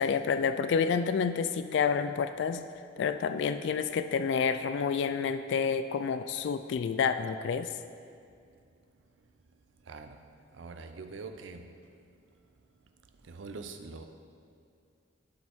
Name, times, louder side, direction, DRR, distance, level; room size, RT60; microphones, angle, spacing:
voice 1, 0.0-2.6 3.0-7.7, left 6 dB, 65° left, 10 dB, 0.3 m, -29 dB
voice 2, 9.9-10.2 10.6-11.6 13.3-14.1, right 4 dB, 75° right, 7 dB, 0.5 m, -43 dB
11.5 x 5.1 x 3.5 m, 2.3 s
head